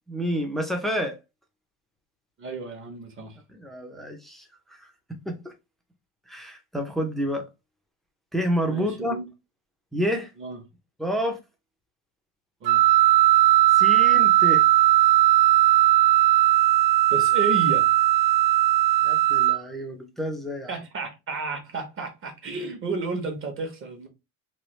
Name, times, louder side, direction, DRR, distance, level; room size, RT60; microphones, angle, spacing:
voice 1, 0.1-1.2 3.5-4.4 4.7-4.8 5.3-5.5 6.3-7.4 8.3-9.1 9.9-10.3 11.0-11.4 13.7-14.6 19.0-20.8, equal, ahead, 0.4 m, -29 dB
voice 2, 2.4-3.4 8.7-9.3 10.4-10.6 12.6-12.8 17.1-17.9 20.7-24.1, right 3 dB, 30° right, 0.8 m, -32 dB
Wind instrument woodwind instrument, 12.7-19.6, right 16 dB, 70° right, 0.6 m, -18 dB
3.2 x 2.3 x 3.0 m
cardioid pair, 140°, 42 cm